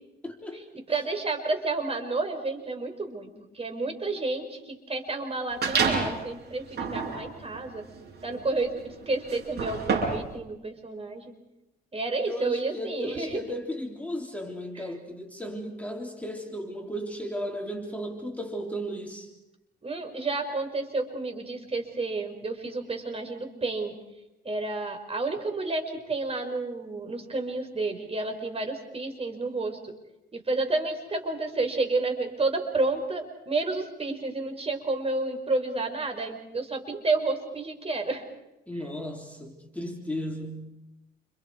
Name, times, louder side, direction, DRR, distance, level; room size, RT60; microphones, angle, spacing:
voice 1, 0.2-0.6 0.9-1.0 12.2-19.3 38.7-40.7, equal, 5° left, 1 dB, 3.6 m, -35 dB
voice 2, 0.9-7.8 8.2-11.3 11.9-13.4 14.8-14.9 19.8-23.9 24.4-29.8 30.3-38.2, right 3 dB, 30° right, 4 dB, 5.5 m, -30 dB
sound 1, 5.6-6.2 6.7-10.3, right 5 dB, 55° right, 7.5 m, -29 dB
29.5 x 28.5 x 4.9 m, 0.96 s
cardioid pair, 90°, 20 cm